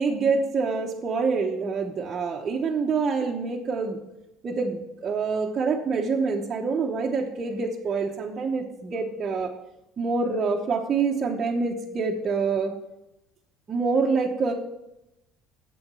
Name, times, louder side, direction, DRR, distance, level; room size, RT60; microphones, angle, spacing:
voice 1, 0.0-4.0 4.4-9.5 10.0-12.8 13.7-14.5, right 4 dB, 30° right, -2 dB, 1.0 m, -26 dB
7.9 x 7.8 x 5.4 m, 0.88 s
cardioid pair, 125°, 0 cm